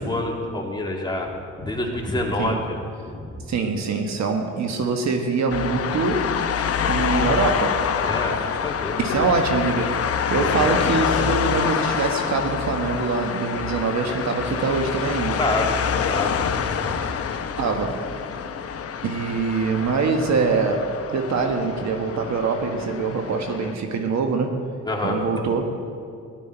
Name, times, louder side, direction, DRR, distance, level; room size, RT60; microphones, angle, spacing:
voice 1, 0.0-1.3 1.6-2.8 3.1-3.4 8.0-9.3 10.3-10.7 15.4-17.0 24.8-25.2, left 1 dB, 15° left, -1 dB, 2.3 m, -27 dB
voice 2, 3.5-6.3 6.9-7.8 9.0-10.0 10.3-15.4 17.6-18.0 19.0-24.5 25.0-25.6, right 4 dB, 65° right, 4 dB, 1.5 m, -24 dB
sound 1, 5.5-23.7, left 7 dB, 50° left, 0.9 m, -26 dB
16.0 x 11.5 x 4.5 m, 2.3 s
cardioid pair, 90°, 30 cm